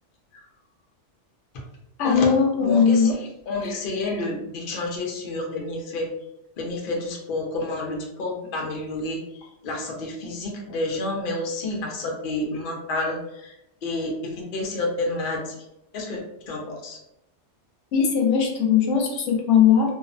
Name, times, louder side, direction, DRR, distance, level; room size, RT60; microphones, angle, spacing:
voice 1, 2.0-3.2 3.6-3.8 17.9-19.9, left 7 dB, 80° left, 1 dB, 0.9 m, -19 dB
voice 2, 2.6-6.1 6.6-15.6 15.9-16.2 16.5-17.0, left 2 dB, 55° left, 0 dB, 0.7 m, -30 dB
2.6 x 2.1 x 2.5 m, 0.84 s
omnidirectional pair, 1.2 m